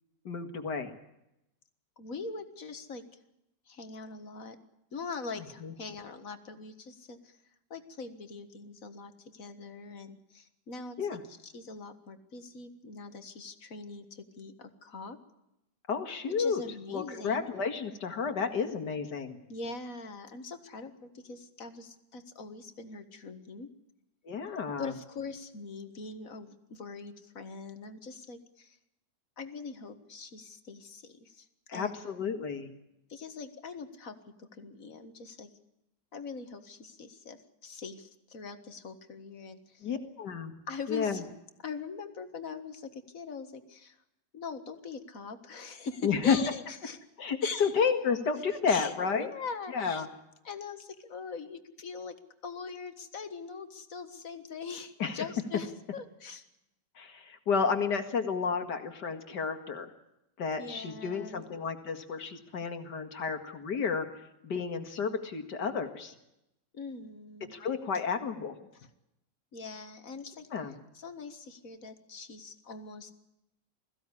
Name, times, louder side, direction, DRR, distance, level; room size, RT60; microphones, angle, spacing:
voice 1, 0.3-0.9 5.6-5.7 11.0-11.2 15.9-16.6 16.9-19.4 24.3-24.9 31.7-32.7 39.8-40.5 40.9-41.2 46.0-46.4 47.2-49.3 49.7-50.1 55.0-55.2 57.0-59.9 60.4-64.1 64.4-66.1 67.5-68.6 70.5-70.7, left 5 dB, 75° left, 7 dB, 2.5 m, -31 dB
voice 2, 2.0-3.2 3.7-4.6 4.9-7.4 7.7-15.2 16.4-17.4 19.5-23.7 24.8-28.8 29.4-31.5 31.7-32.0 33.1-35.5 36.1-39.9 40.7-41.2 41.6-44.0 44.3-47.0 47.4-47.7 48.7-50.1 50.4-52.2 52.4-56.5 60.6-61.4 66.7-67.5 68.7-68.9 69.5-70.5 70.9-73.1, left 4 dB, 50° left, 9 dB, 2.0 m, -42 dB
21.5 x 16.0 x 9.9 m, 0.86 s
omnidirectional pair, 1.8 m